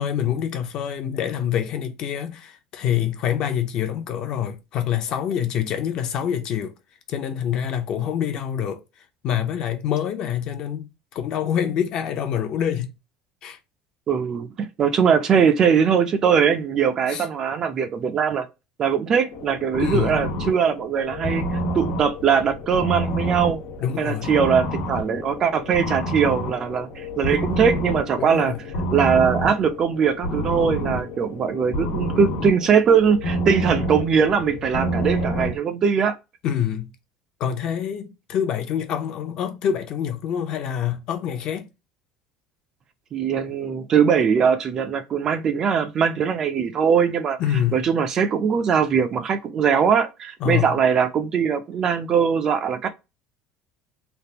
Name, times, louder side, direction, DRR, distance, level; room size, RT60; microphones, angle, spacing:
voice 1, 0.0-6.7 7.1-8.8 9.2-12.9 13.4-13.6 17.1-17.3 19.8-20.2 23.8-24.3 28.2-28.6 36.4-36.9 37.4-41.7 47.4-47.8 50.4-50.8, left 9 dB, 40° left, 0.6 m, -26 dB
voice 2, 14.1-18.5 18.8-23.6 24.0-28.5 28.9-36.1 43.1-47.4 47.7-52.9, right 7 dB, 25° right, 0.4 m, -21 dB
sound 1, 19.3-35.6, equal, 75° left, 1.2 m, -28 dB
3.4 x 2.4 x 2.8 m
cardioid pair, 175°, 2 cm